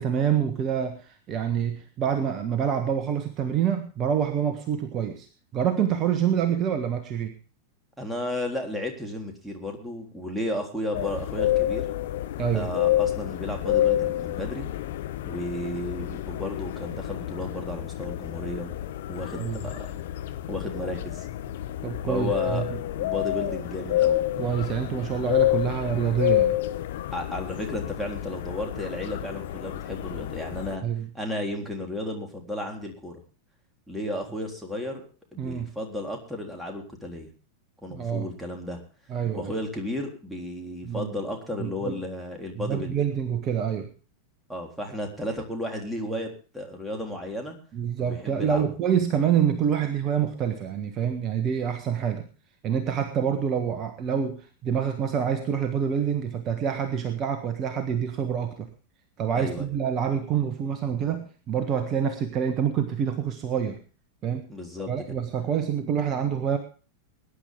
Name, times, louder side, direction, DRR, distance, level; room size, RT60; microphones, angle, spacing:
voice 1, 0.0-5.3 5.5-7.3 12.4-12.7 19.4-19.6 21.8-22.7 24.4-26.6 30.8-31.1 35.4-35.7 37.9-38.3 39.1-39.5 40.8-41.1 41.6-42.0 42.5-43.9 47.7-52.3 52.6-58.7 59.2-63.8 64.2-64.5 64.9-66.6, right 8 dB, 30° right, 7 dB, 1.4 m, -26 dB
voice 2, 8.0-11.9 12.5-14.7 15.2-18.7 19.1-19.9 20.5-21.3 22.1-22.6 23.0-24.2 27.1-30.8 31.1-33.2 33.9-35.0 35.3-37.3 37.8-38.8 39.3-43.0 44.5-46.3 46.5-47.6 48.0-48.7 59.3-59.7 64.5-64.9, left 1 dB, 5° right, 1 dB, 3.6 m, -33 dB
sound 1, 10.9-30.8, left 13 dB, 55° left, 1.0 m, -29 dB
21.5 x 10.5 x 3.6 m, 0.37 s
figure-of-eight pair, 90°, 0 cm